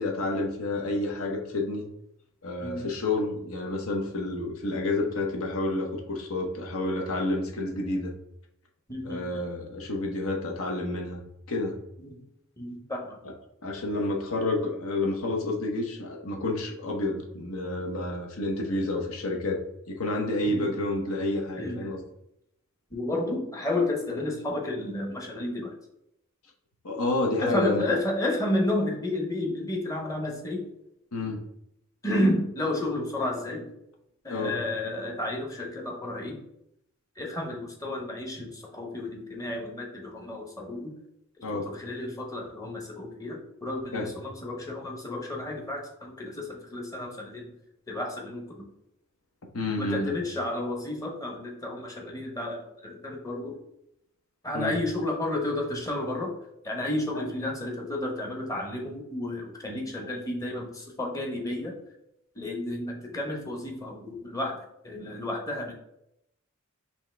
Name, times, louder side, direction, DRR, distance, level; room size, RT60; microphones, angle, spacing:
voice 1, 0.0-1.8 2.4-8.1 9.0-11.2 11.5-11.8 13.6-19.6 19.9-22.0 26.8-27.9 31.1-31.4 34.3-34.5 41.4-41.7 43.9-44.1 49.5-50.2 54.5-54.7 57.1-57.2, left 2 dB, 80° left, 2 dB, 0.9 m, -29 dB
voice 2, 8.9-9.4 12.0-12.2 12.6-13.2 20.4-20.7 21.6-21.8 22.9-25.7 27.4-30.6 32.0-33.7 34.2-36.4 37.2-40.9 41.5-47.5 47.9-48.6 49.8-53.6 54.4-56.3 56.6-61.8 62.3-64.6 64.8-65.7, left 1 dB, 15° left, 0 dB, 0.8 m, -31 dB
5.4 x 2.9 x 3.3 m, 0.79 s
head